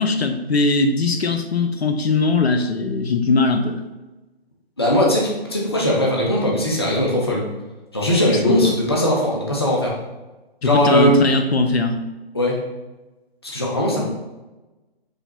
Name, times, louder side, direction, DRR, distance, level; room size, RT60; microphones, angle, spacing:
voice 1, 0.0-3.8 8.4-8.7 10.6-12.0, left 3 dB, 90° left, 6 dB, 0.5 m, -20 dB
voice 2, 4.8-7.4 7.9-9.9 10.6-11.2 12.3-12.6 13.4-14.0, equal, 25° left, -3 dB, 0.4 m, -19 dB
4.8 x 2.0 x 2.8 m, 1.1 s
figure-of-eight pair, 145°, 31 cm